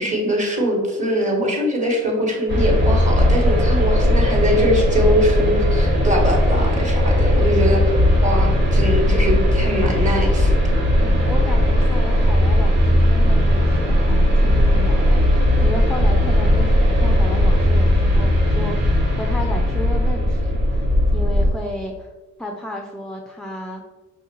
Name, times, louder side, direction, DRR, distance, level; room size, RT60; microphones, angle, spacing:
voice 1, 0.0-7.9 8.2-10.7, equal, 25° right, 0 dB, 1.1 m, -22 dB
sound 1, 2.5-21.5, left 1 dB, 80° right, 1.4 m, -17 dB
voice 2, 11.0-20.9 21.1-22.1 22.4-23.8, left 1 dB, ahead, 0 dB, 0.3 m, -32 dB
5.1 x 2.4 x 2.9 m, 1.2 s
cardioid pair, 90°, 30 cm